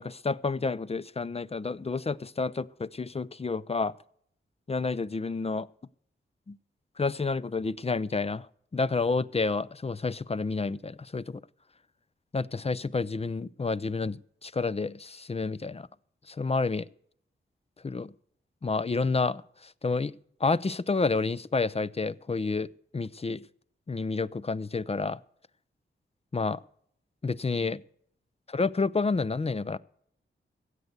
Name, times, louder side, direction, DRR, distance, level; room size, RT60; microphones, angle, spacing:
voice 1, 0.0-3.9 4.7-5.7 6.5-6.6 7.0-8.5 8.7-11.4 12.3-14.2 14.4-15.9 16.3-16.9 17.8-18.1 18.6-20.1 20.4-23.4 23.9-25.2 26.3-26.6 27.2-27.8 28.5-29.8, left 4 dB, 30° left, 0.5 m, -29 dB
16.0 x 8.0 x 8.1 m
cardioid pair, 65°, 20 cm